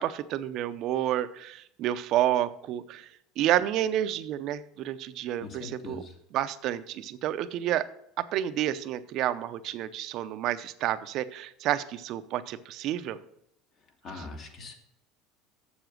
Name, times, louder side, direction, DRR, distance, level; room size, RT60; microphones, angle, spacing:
voice 1, 0.0-3.1 3.4-6.0 6.3-7.8 8.3-13.2, right 12 dB, 55° right, 12 dB, 0.6 m, -29 dB
voice 2, 5.4-6.2 14.0-14.8, left 3 dB, 45° left, 3 dB, 2.0 m, -41 dB
7.1 x 7.0 x 6.2 m, 0.77 s
supercardioid pair, 115°, 0 cm